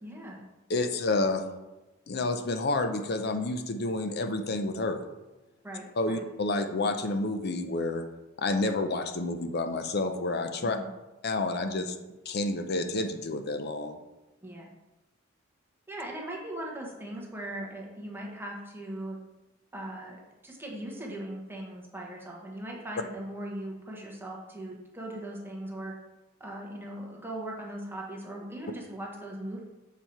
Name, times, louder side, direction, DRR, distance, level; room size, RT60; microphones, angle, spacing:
voice 1, 0.0-0.5 5.6-6.2 10.6-10.9 14.4-14.7 15.9-19.2 19.7-25.9 26.4-29.6, right 1 dB, 10° right, -2 dB, 1.0 m, -39 dB
voice 2, 0.7-1.4 2.1-5.0 6.0-8.0 8.4-10.8 11.2-12.0 12.3-14.0, left 2 dB, 50° left, 7 dB, 0.6 m, -29 dB
7.0 x 4.5 x 4.4 m, 1.0 s
head